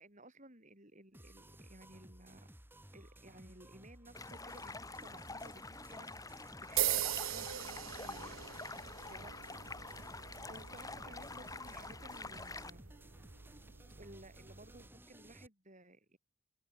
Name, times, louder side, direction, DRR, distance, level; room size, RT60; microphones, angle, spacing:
voice 1, 0.0-2.5 2.9-8.4 8.9-9.5 9.7-13.0 14.0-16.2, right 1 dB, 35° right, 7.0 m, -57 dB
sound 1, 1.1-15.5, right 1 dB, 10° right, 5.6 m, -57 dB
Stream, 4.1-12.7, left 3 dB, 15° left, 5.0 m, -47 dB
sound 2, 6.8-14.9, right 12 dB, 70° right, 1.0 m, -41 dB
open air
head